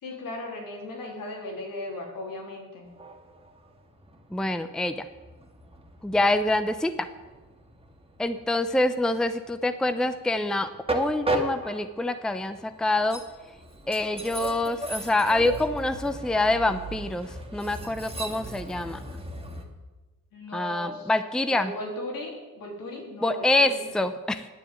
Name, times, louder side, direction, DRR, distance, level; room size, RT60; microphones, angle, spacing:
voice 1, 0.0-2.9 20.3-21.1 21.5-23.9, left 1 dB, 70° left, 0 dB, 3.7 m, -37 dB
Train, 2.9-19.6, right 1 dB, 15° right, 2.0 m, -37 dB
voice 2, 4.3-5.0 6.0-7.1 8.2-13.2 13.9-19.0 20.5-21.7 23.2-24.5, left 2 dB, ahead, 10 dB, 0.7 m, -26 dB
9.7 x 6.8 x 8.9 m, 1.2 s
cardioid pair, 70°, 35 cm